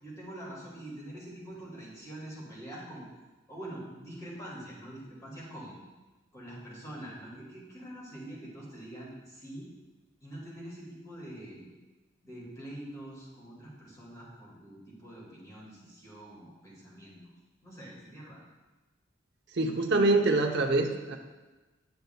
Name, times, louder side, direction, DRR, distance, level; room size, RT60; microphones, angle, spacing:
voice 1, 0.0-3.0 3.5-5.7 6.3-9.7 10.2-11.7 12.2-17.2 17.6-18.4, right 1 dB, 15° left, -5 dB, 2.1 m, -45 dB
voice 2, 19.5-21.2, right 2 dB, 55° right, 4 dB, 0.7 m, -25 dB
10.0 x 6.7 x 2.2 m, 1.2 s
head